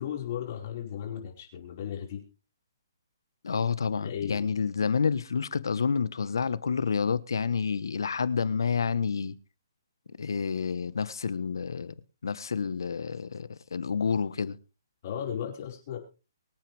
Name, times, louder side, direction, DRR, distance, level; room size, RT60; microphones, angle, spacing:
voice 1, 0.0-2.2 4.0-4.5 15.0-16.0, left 9 dB, 40° left, 5.1 m, -35 dB
voice 2, 3.4-9.3 10.2-11.9 12.2-14.6, left 5 dB, 85° left, 1.2 m, -29 dB
24.0 x 9.1 x 3.5 m
hypercardioid pair, 160°, 2 cm